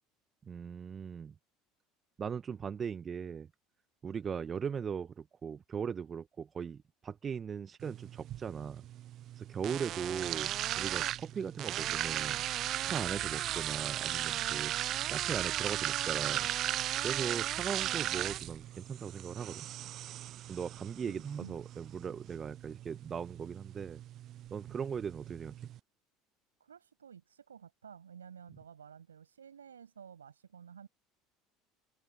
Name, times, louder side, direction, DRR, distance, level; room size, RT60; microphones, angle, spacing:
voice 1, 0.4-1.3 2.2-3.5 4.0-8.8 9.3-12.4 12.8-14.7 15.1-16.5 17.0-19.7 20.5-24.0 24.5-25.6, right 7 dB, 35° right, 1.1 m, -39 dB
sound 1, 7.8-25.8, right 13 dB, 50° right, 0.4 m, -37 dB
voice 2, 21.1-21.6 26.6-30.9, right 7 dB, 85° right, 7.5 m, -52 dB
open air
hypercardioid pair, 70°, 0 cm